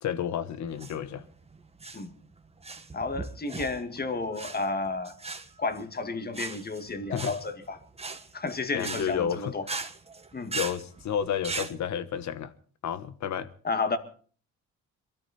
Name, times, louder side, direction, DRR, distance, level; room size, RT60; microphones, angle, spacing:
voice 1, 0.0-1.2 7.1-7.3 8.7-9.5 10.5-12.5 12.8-13.5, left 9 dB, 65° left, 1.4 m, -31 dB
sound 1, 0.7-11.7, right 3 dB, 20° right, 1.6 m, -39 dB
voice 2, 2.9-5.2 5.6-7.8 8.3-9.7 10.3-10.6 13.6-14.0, left 3 dB, 30° left, 2.1 m, -31 dB
23.5 x 13.5 x 4.3 m
cardioid pair, 90°, 30 cm